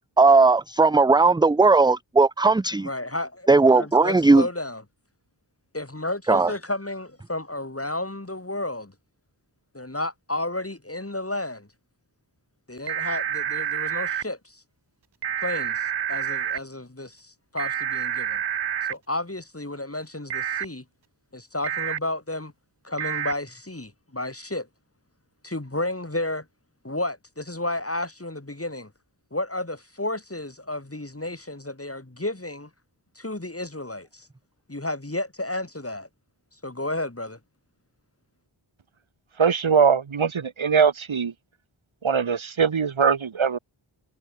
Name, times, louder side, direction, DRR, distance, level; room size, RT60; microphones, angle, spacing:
voice 1, 0.2-2.9 3.5-4.4 6.3-6.5, right 3 dB, 10° right, 0.4 m, -17 dB
voice 2, 2.8-3.5 3.7-4.8 5.7-8.9 9.7-11.7 12.7-14.6 15.4-18.4 18.9-20.8 21.3-22.5 22.8-24.7 25.4-26.5 26.8-28.9 29.3-32.7 33.2-34.3 34.7-36.1 36.6-37.4, left 2 dB, 30° left, 7.4 m, -32 dB
sound 1, 12.9-14.2 15.2-16.6 17.6-18.9 20.3-20.6 21.6-22.0 23.0-23.3, right 8 dB, 60° right, 0.7 m, -28 dB
voice 3, 39.4-41.3 42.0-43.6, right 6 dB, 75° right, 1.4 m, -21 dB
wide cardioid pair, 55°, 47 cm